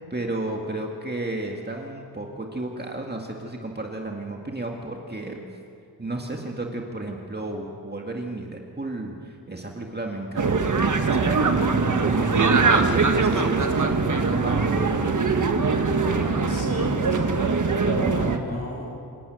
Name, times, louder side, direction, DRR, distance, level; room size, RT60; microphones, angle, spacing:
voice 1, 0.1-5.4 6.0-15.1, right 2 dB, 25° right, 1 dB, 2.0 m, -33 dB
sound 1, 10.4-18.4, right 4 dB, 50° right, 1.5 m, -22 dB
voice 2, 16.0-17.3 17.8-18.9, left 1 dB, 35° left, -1 dB, 6.7 m, -33 dB
26.5 x 11.5 x 9.3 m, 2.4 s
wide cardioid pair, 85°, 40 cm